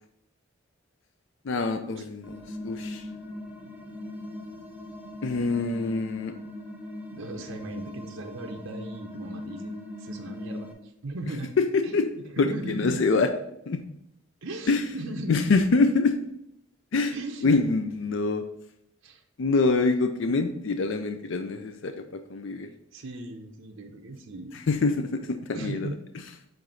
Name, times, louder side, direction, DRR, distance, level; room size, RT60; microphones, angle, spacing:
voice 1, 1.4-3.0 5.2-6.3 11.6-12.1 12.4-13.3 13.7-13.8 14.7-14.8 15.3-16.2 16.9-17.1 17.4-18.4 19.4-21.9 22.3-22.7 24.7-25.9, left 3 dB, 65° left, 7 dB, 0.5 m, -25 dB
sound 1, 2.2-10.7, left 1 dB, 10° right, 0.7 m, -40 dB
voice 2, 7.1-11.5 11.8-13.0 14.4-15.5 17.1-17.5 19.0-19.2 22.9-24.6 25.5-26.0, right 1 dB, 80° right, 2 dB, 0.7 m, -37 dB
7.7 x 2.6 x 5.6 m, 0.77 s
head